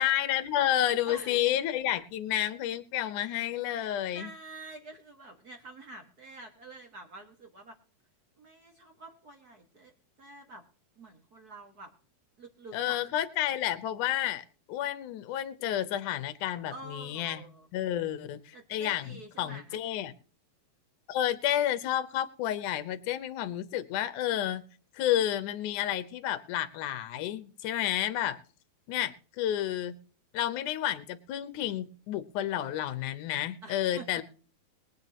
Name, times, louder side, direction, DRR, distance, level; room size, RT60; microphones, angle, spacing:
voice 1, 0.0-4.3 12.7-17.4 17.7-20.1 21.1-24.6 24.9-28.4 28.9-30.0 30.3-34.2, left 12 dB, 70° left, 12 dB, 2.1 m, -30 dB
voice 2, 1.1-1.5 3.7-7.8 8.4-9.9 10.2-10.6 10.9-11.9 12.4-13.0 16.7-17.7 18.5-19.8 33.6-34.2, right 2 dB, 45° right, 2 dB, 1.2 m, -47 dB
22.5 x 9.2 x 2.9 m, 0.41 s
omnidirectional pair, 4.4 m